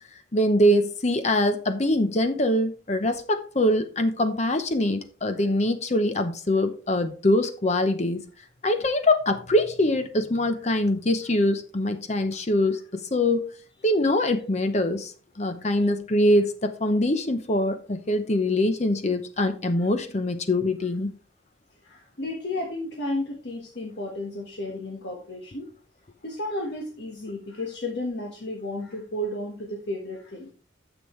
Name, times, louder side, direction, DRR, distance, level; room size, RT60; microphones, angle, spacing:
voice 1, 0.3-8.2 8.6-13.4 13.8-15.1 15.4-21.1, left 1 dB, 35° left, 0.7 m, -23 dB
voice 2, 21.8-25.7 26.2-30.5, left 1 dB, 60° left, 1.4 m, -33 dB
9.9 x 7.2 x 3.1 m
head